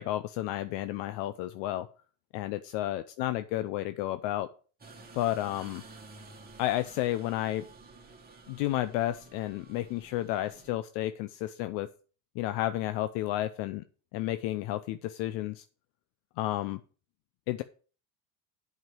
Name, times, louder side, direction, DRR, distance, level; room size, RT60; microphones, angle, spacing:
voice 1, 0.0-1.9 2.3-4.5 5.1-5.8 6.6-7.6 8.5-11.9 12.4-13.8 14.1-15.6 16.4-16.8 17.5-17.6, left 14 dB, 65° left, 12 dB, 0.7 m, -31 dB
sound 1, 4.8-10.7, right 3 dB, 20° right, 2.2 m, -52 dB
7.8 x 5.3 x 7.4 m, 0.39 s
supercardioid pair, 95°, 46 cm